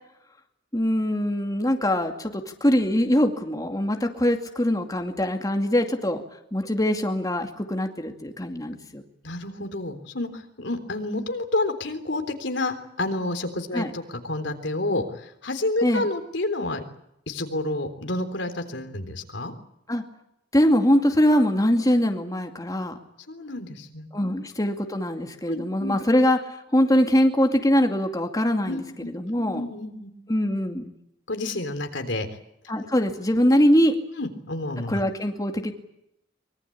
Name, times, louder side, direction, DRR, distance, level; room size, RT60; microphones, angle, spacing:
voice 1, 0.7-6.2 6.5-9.0 13.7-13.9 15.8-16.1 19.9-20.0 20.5-23.0 24.1-29.6 30.3-30.9 32.7-34.0 34.9-35.7, equal, 20° left, 4 dB, 2.4 m, -23 dB
voice 2, 9.2-16.8 17.3-19.5 23.3-24.4 25.5-26.0 28.7-30.1 31.3-32.3 34.2-35.0, left 2 dB, 75° left, 7 dB, 3.6 m, -30 dB
24.5 x 23.0 x 8.6 m, 0.80 s
head